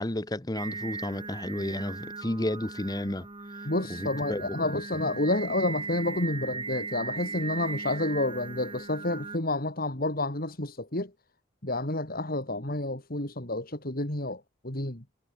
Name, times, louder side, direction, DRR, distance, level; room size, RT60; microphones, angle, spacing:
voice 1, 0.0-3.3 3.9-4.6, left 1 dB, 20° left, 1.1 m, -32 dB
Singing, 0.5-9.4, right 4 dB, 25° right, 3.0 m, -38 dB
voice 2, 3.6-11.1 11.6-15.0, left 2 dB, 45° left, 3.3 m, -30 dB
head